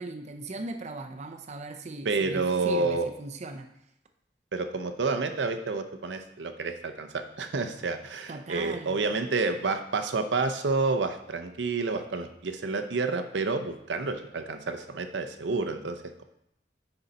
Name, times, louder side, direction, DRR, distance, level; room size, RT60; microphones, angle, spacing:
voice 1, 0.0-3.7 8.3-9.0, right 2 dB, 40° right, 5 dB, 0.5 m, -38 dB
voice 2, 2.0-3.1 4.5-16.2, right 3 dB, 80° right, 7 dB, 0.6 m, -29 dB
9.7 x 4.0 x 4.1 m, 0.76 s
head